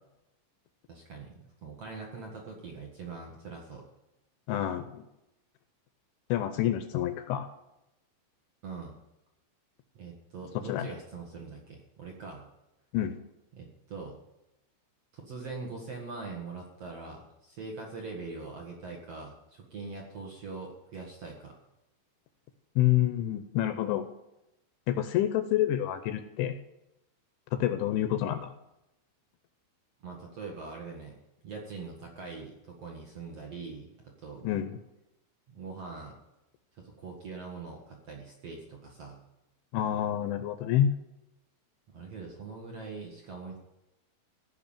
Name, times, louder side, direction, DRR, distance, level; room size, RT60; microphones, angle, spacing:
voice 1, 0.9-3.8 8.6-9.0 9.9-12.5 13.5-14.2 15.1-21.6 30.0-31.2 31.4-34.5 35.5-36.1 36.8-39.2 41.9-43.6, right 4 dB, 65° right, 0 dB, 1.5 m, -42 dB
voice 2, 4.5-5.0 6.3-7.5 10.7-10.9 12.9-13.2 22.8-24.1 24.9-26.6 27.5-28.5 34.4-34.8 39.7-40.9, left 12 dB, 80° left, 9 dB, 2.8 m, -28 dB
16.5 x 6.0 x 8.9 m, 0.89 s
omnidirectional pair, 6.0 m